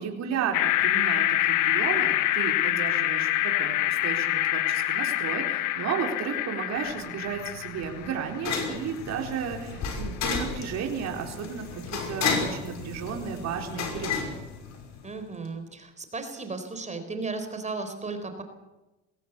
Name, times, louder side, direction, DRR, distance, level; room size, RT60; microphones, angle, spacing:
voice 1, 0.0-14.2, right 7 dB, 55° right, 2 dB, 4.1 m, -33 dB
sound 1, 0.5-8.7, left 15 dB, 75° left, 1.4 m, -26 dB
sound 2, 6.9-15.2, left 5 dB, 60° left, 5.7 m, -33 dB
voice 2, 15.0-18.4, right 3 dB, 20° right, 7 dB, 4.0 m, -35 dB
21.0 x 16.5 x 8.2 m, 1.0 s
supercardioid pair, 100°, 31 cm